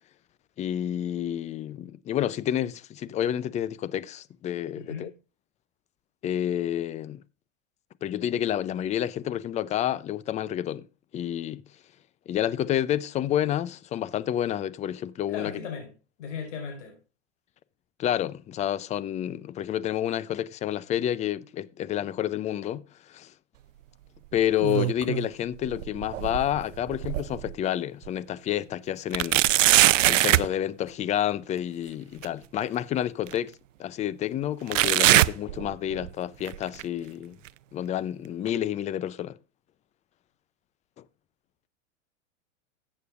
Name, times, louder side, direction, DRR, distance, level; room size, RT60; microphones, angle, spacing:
voice 1, 0.6-5.1 6.2-7.2 8.0-10.9 11.1-11.6 12.3-15.5 18.0-23.3 24.3-29.4 30.1-33.5 33.8-37.4 37.7-39.4, left 11 dB, 20° left, 0.5 m, -29 dB
voice 2, 4.7-5.1 15.3-15.9 16.2-17.0, left 6 dB, 75° left, 5.2 m, -36 dB
sound 1, 24.4-25.3 25.6-27.5 28.0-28.1 29.1-30.5 32.2-32.3 33.3-33.4 34.7-36.1 36.4-36.8 37.5-37.6 38.5-38.6, right 15 dB, 85° right, 0.5 m, -22 dB
14.0 x 8.7 x 2.4 m
hypercardioid pair, 115°, 37 cm